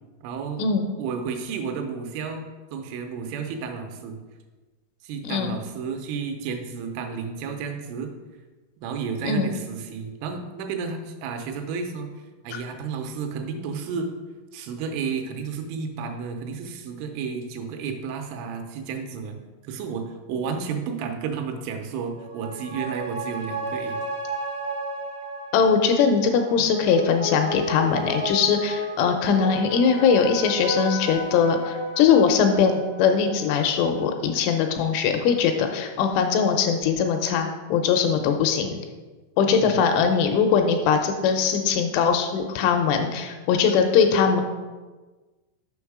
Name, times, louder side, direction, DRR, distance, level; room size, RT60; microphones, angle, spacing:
voice 1, 0.2-0.6 1.0-2.4 2.7-4.2 5.0-8.1 8.8-12.1 12.4-14.1 14.5-19.4 19.6-24.0 26.6-26.7 39.5-39.8, right 5 dB, 80° right, 4 dB, 3.0 m, -32 dB
voice 2, 5.2-5.6 9.2-9.5 25.5-38.8 39.4-44.4, left 6 dB, 85° left, 5 dB, 2.9 m, -21 dB
sound 1, 22.1-34.9 35.2-35.3, right 1 dB, 65° right, 0.9 m, -33 dB
7.2 x 6.0 x 4.7 m, 1.3 s
omnidirectional pair, 5.9 m